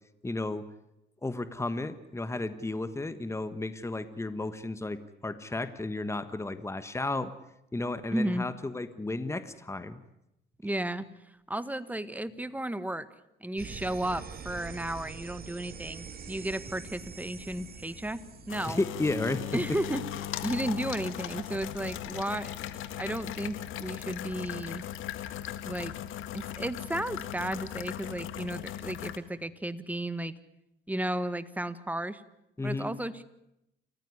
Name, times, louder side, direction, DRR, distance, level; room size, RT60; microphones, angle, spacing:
voice 1, 0.2-0.6 1.2-7.3 7.7-10.0 18.7-19.4 32.6-32.9, left 2 dB, 15° left, 12 dB, 1.5 m, -33 dB
voice 2, 8.1-8.4 10.6-11.0 11.5-13.1 13.4-18.8 19.5-20.0 20.4-22.6 23.0-24.8 25.6-25.9 26.3-30.3 30.9-32.2 32.6-33.2, right 1 dB, 10° right, 13 dB, 1.6 m, -33 dB
sound 1, 13.6-18.6, right 6 dB, 50° right, 2.6 m, -44 dB
sound 2, 16.5-29.2, left 11 dB, 85° left, 1.7 m, -39 dB
29.0 x 15.0 x 9.8 m, 0.85 s
cardioid pair, 90°, 20 cm